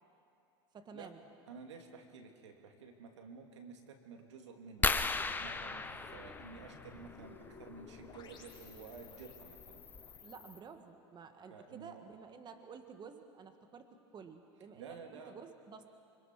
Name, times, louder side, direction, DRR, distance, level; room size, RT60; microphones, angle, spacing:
voice 1, 0.7-1.2 10.2-13.9 14.1-15.9, right 6 dB, 30° right, 7 dB, 1.7 m, -52 dB
voice 2, 1.5-5.1 5.4-9.8 11.5-12.1 14.7-15.4, right 5 dB, 85° right, 3 dB, 2.8 m, -52 dB
sound 1, 4.8-10.6, left 5 dB, 30° left, 4.4 m, -54 dB
sound 2, 4.8-7.2 8.8-9.0 9.6-9.7 9.9-10.2, left 3 dB, 15° left, 0.9 m, -35 dB
25.5 x 25.5 x 6.1 m, 2.6 s
hypercardioid pair, 100°, 15 cm